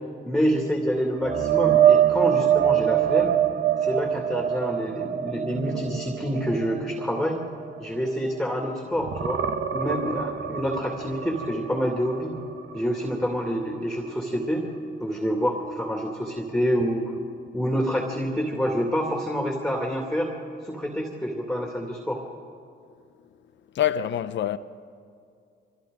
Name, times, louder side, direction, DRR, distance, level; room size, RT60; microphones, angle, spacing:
voice 1, 0.2-3.4 3.8-7.4 7.8-9.4 9.7-12.4 12.7-14.7 15.0-17.1 17.5-20.3 20.6-22.2, equal, ahead, 2.5 m, -27 dB
sound 1, 1.2-8.6 9.0-12.8 13.2-13.4 16.8-16.9, right 10 dB, 60° right, 1.0 m, -24 dB
voice 2, 23.7-24.6, left 10 dB, 65° left, 0.9 m, -25 dB
28.0 x 24.0 x 3.9 m
cardioid pair, 90°, 20 cm